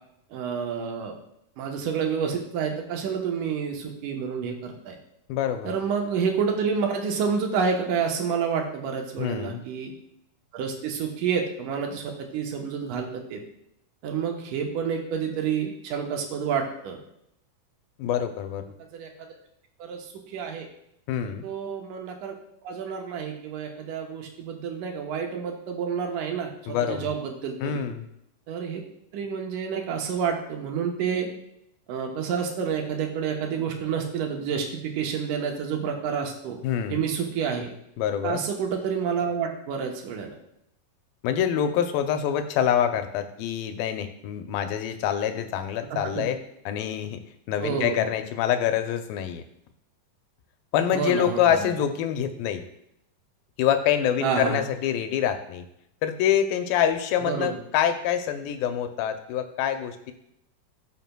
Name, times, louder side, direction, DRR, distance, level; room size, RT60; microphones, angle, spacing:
voice 1, 0.3-1.1 1.6-5.0 5.6-9.9 10.5-13.4 14.0-17.0 18.9-19.1 19.8-20.1 20.3-20.7 21.4-22.3 22.6-27.8 28.5-28.8 29.1-31.3 31.9-36.6 36.9-37.7 38.2-40.4 45.9-46.2 47.6-48.1 50.9-51.7 54.2-54.6 57.2-57.5, right 6 dB, 70° right, 2 dB, 2.3 m, -29 dB
voice 2, 5.3-5.8 9.2-9.6 18.0-18.7 21.1-21.5 26.7-27.1 27.6-28.1 36.6-37.0 38.0-38.5 41.2-46.4 46.7-47.2 47.5-49.4 50.7-52.6 53.6-55.7 56.0-60.1, left 9 dB, 90° left, 8 dB, 2.4 m, -26 dB
13.5 x 5.8 x 2.2 m, 0.77 s
omnidirectional pair, 4.0 m